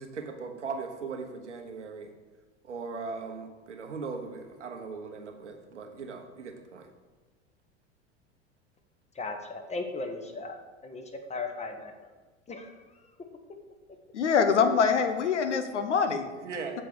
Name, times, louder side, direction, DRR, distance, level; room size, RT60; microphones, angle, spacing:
voice 1, 0.0-2.1 2.6-6.9 16.3-16.8, right 4 dB, 85° right, 4 dB, 1.1 m, -39 dB
voice 2, 9.1-11.9 12.5-12.9, left 3 dB, 20° left, 5 dB, 1.2 m, -37 dB
voice 3, 14.1-16.3, left 6 dB, 85° left, 8 dB, 0.9 m, -24 dB
7.4 x 4.5 x 6.6 m, 1.3 s
hypercardioid pair, 80°, 35 cm